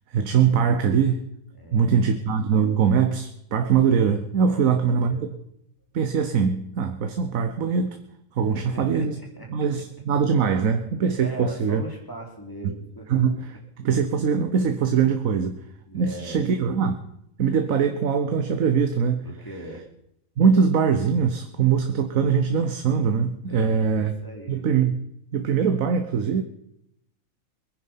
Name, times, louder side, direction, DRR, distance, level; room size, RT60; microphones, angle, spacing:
voice 1, 0.1-1.2 1.7-5.3 5.9-8.0 8.4-9.2 9.5-11.8 13.1-15.6 15.9-17.0 17.4-19.2 20.4-24.1 24.5-24.9 25.3-26.4, right 6 dB, 75° right, 7 dB, 1.4 m, -22 dB
voice 2, 1.5-2.1 4.5-5.2 8.5-9.6 11.2-13.2 15.3-15.4 15.9-16.4 19.2-19.8 23.5-24.6, right 1 dB, 15° left, 0 dB, 3.3 m, -39 dB
22.5 x 9.6 x 5.6 m, 0.77 s
omnidirectional pair, 1.4 m